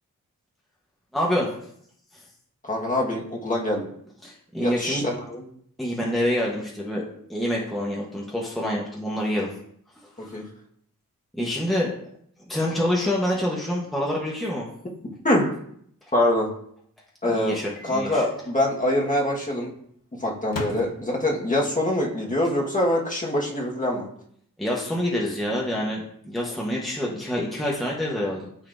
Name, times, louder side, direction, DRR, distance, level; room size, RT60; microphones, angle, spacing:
voice 1, 1.1-1.5 4.2-5.0 5.8-7.0 7.3-9.5 10.2-10.4 11.4-11.9 12.5-14.7 17.3-18.2 24.6-28.5, left 1 dB, ahead, -4 dB, 1.1 m, -26 dB
voice 2, 2.6-3.9 4.6-5.4 10.3-10.4 15.2-15.5 16.1-16.5 17.2-17.5 17.8-19.7 20.1-24.1, left 1 dB, 25° left, -2 dB, 1.5 m, -24 dB
Microwave oven, 17.7-18.1 18.4-18.5 20.4-21.5, left 2 dB, 85° left, 1.0 m, -37 dB
12.5 x 4.2 x 2.6 m, 0.67 s
wide cardioid pair, 135°, 33 cm